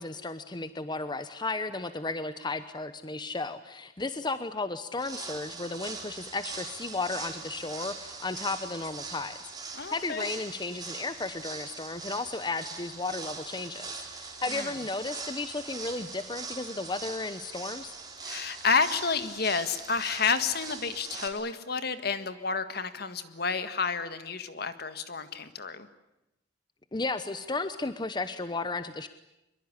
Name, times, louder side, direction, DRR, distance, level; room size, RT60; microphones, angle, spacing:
voice 1, 0.0-9.5 9.9-18.0 26.9-29.1, left 3 dB, 25° left, 11 dB, 0.9 m, -34 dB
sound 1, 5.0-21.3, right 4 dB, 20° right, 3.6 m, -41 dB
voice 2, 9.8-10.3 14.5-14.7 18.2-25.9, left 5 dB, 60° left, 11 dB, 1.8 m, -30 dB
24.0 x 22.5 x 9.9 m, 0.91 s
head